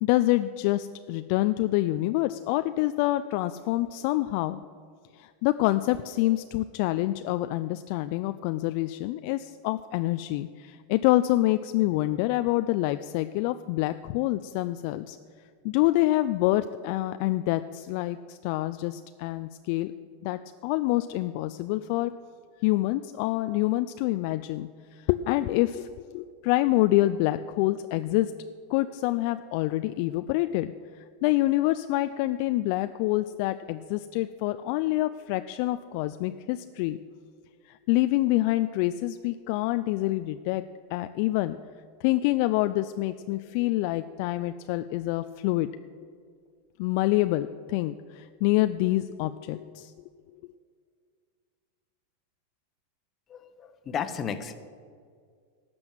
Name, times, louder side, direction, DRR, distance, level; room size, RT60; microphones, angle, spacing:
voice 1, 0.0-4.6 5.2-15.2 15.6-19.9 20.2-22.1 22.6-28.3 28.7-30.7 31.2-37.0 37.9-40.6 40.9-41.6 42.0-45.7 46.8-49.9, left 17 dB, 55° left, 11 dB, 0.4 m, -26 dB
voice 2, 53.3-54.5, left 7 dB, 35° left, 10 dB, 1.0 m, -33 dB
12.0 x 6.1 x 9.0 m, 2.1 s
hypercardioid pair, 105°, 0 cm